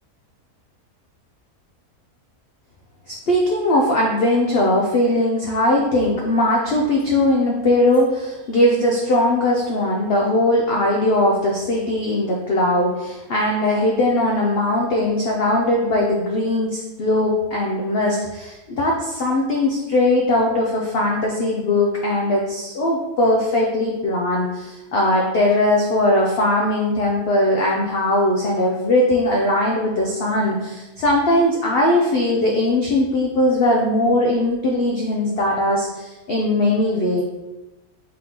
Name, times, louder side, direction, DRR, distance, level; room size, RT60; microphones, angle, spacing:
voice 1, 3.1-37.2, left 1 dB, 85° left, -1 dB, 0.5 m, -20 dB
3.8 x 3.5 x 2.9 m, 1.1 s
omnidirectional pair, 1.6 m